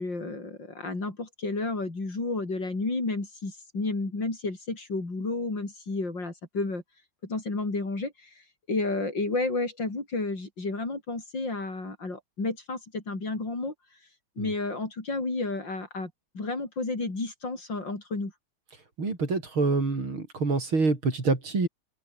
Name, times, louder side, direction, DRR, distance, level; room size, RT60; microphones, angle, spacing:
voice 1, 0.0-6.8 7.2-8.3 8.7-13.7 14.4-18.3, left 3 dB, 55° left, 6.1 m, -31 dB
voice 2, 19.0-21.7, right 3 dB, 70° right, 5.5 m, -26 dB
omnidirectional pair, 2.3 m